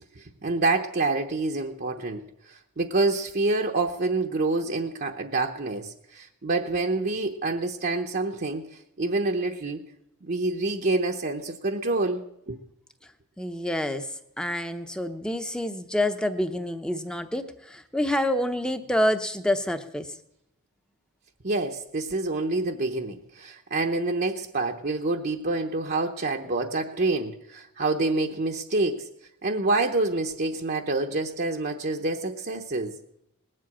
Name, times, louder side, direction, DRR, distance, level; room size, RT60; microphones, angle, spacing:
voice 1, 0.2-2.2 2.5-8.6 9.0-9.8 10.2-12.6 21.4-29.1 29.4-33.0, right 2 dB, 45° right, 1 dB, 0.9 m, -27 dB
voice 2, 13.4-20.2, left 1 dB, 5° left, 8 dB, 0.8 m, -27 dB
19.5 x 7.7 x 8.6 m, 0.80 s
head